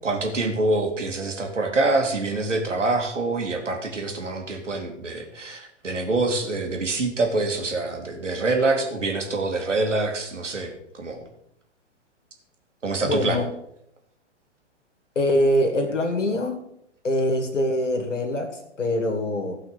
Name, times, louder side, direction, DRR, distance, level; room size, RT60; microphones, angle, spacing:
voice 1, 0.0-11.2 12.8-13.4, right 2 dB, 90° right, 2 dB, 2.6 m, -25 dB
voice 2, 13.0-13.5 15.2-16.6 17.0-19.5, left 1 dB, 90° left, 3 dB, 2.4 m, -23 dB
14.5 x 5.7 x 5.2 m, 0.75 s
hypercardioid pair, 125°, 36 cm